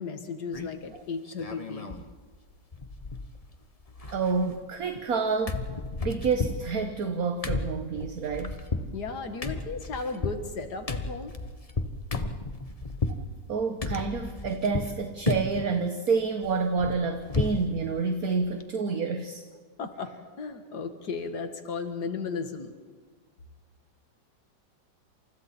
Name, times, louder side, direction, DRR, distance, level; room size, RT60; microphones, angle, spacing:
voice 1, 0.0-2.0 8.9-11.3 19.8-22.8, left 4 dB, 60° left, 7 dB, 2.4 m, -35 dB
sound 1, 0.5-0.9 1.3-2.1 2.3-2.4 2.7-3.6 3.8-5.2 5.5-13.2 13.8-15.0 15.3-15.7 16.1-17.7 18.0-18.1 18.4-18.6, left 3 dB, 25° left, 1.1 m, -33 dB
voice 2, 4.1-5.6 6.0-8.6 13.5-19.4, right 4 dB, 55° right, 6 dB, 1.6 m, -28 dB
29.0 x 27.5 x 4.4 m, 1.5 s
omnidirectional pair, 2.0 m